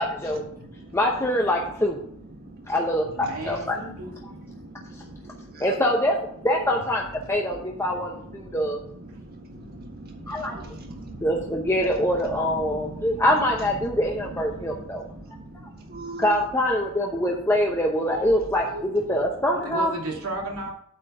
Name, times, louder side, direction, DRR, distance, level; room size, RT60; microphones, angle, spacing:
voice 1, 0.0-0.4 0.9-2.0 2.7-3.8 5.6-6.2 6.4-8.8 10.3-10.6 11.2-15.0 16.2-19.9, left 1 dB, 10° left, -1 dB, 0.8 m, -24 dB
voice 2, 0.5-1.0 2.4-2.7 4.2-5.8 8.4-8.6 9.1-11.5 12.6-13.2 14.5-16.4, right 2 dB, 45° right, 2 dB, 1.6 m, -41 dB
voice 3, 3.2-4.1 6.5-6.8 18.1-19.2 19.5-20.7, right 1 dB, 85° right, -1 dB, 2.5 m, -34 dB
8.8 x 4.4 x 6.6 m, 0.66 s
head